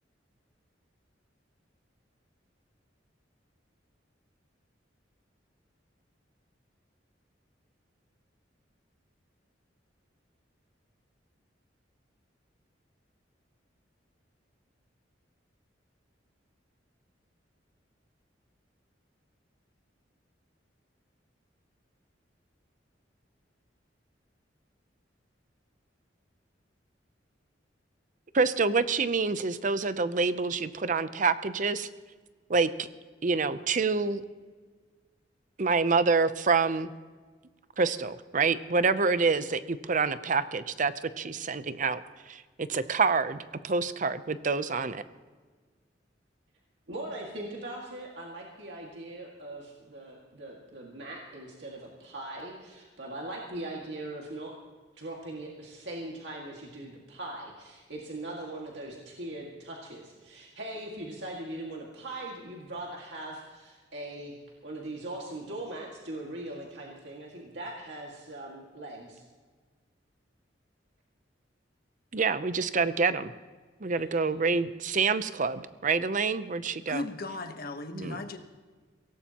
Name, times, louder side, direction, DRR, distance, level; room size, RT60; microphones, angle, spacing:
voice 1, 28.3-31.9 32.5-32.9 33.2-34.2 35.6-36.9 37.8-42.0 42.3-45.0 72.1-73.3 73.8-77.0 77.9-78.3, right 4 dB, 45° right, 13 dB, 0.6 m, -27 dB
voice 2, 46.9-54.5 55.0-64.3 64.6-69.2 74.1-74.2, right 1 dB, 65° right, -2 dB, 2.0 m, -40 dB
voice 3, 76.9-78.4, left 2 dB, 55° left, 6 dB, 1.2 m, -36 dB
23.5 x 17.5 x 3.0 m, 1.5 s
head